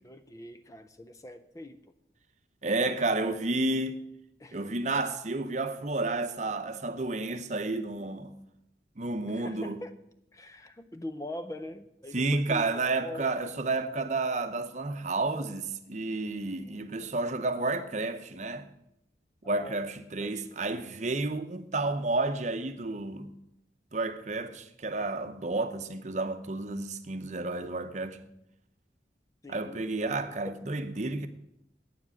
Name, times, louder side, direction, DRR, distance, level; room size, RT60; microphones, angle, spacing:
voice 1, 0.0-1.9 4.4-4.8 9.3-9.9 10.3-13.3 16.6-17.1 19.4-19.8 20.2-20.8 29.4-29.9 30.2-30.6, left 1 dB, 20° left, 0.5 m, -43 dB
voice 2, 2.6-4.0 4.5-8.3 9.0-9.8 12.1-18.7 19.4-23.3 23.9-28.2 29.5-31.3, right 2 dB, 40° right, 0.8 m, -31 dB
9.2 x 7.3 x 9.0 m
head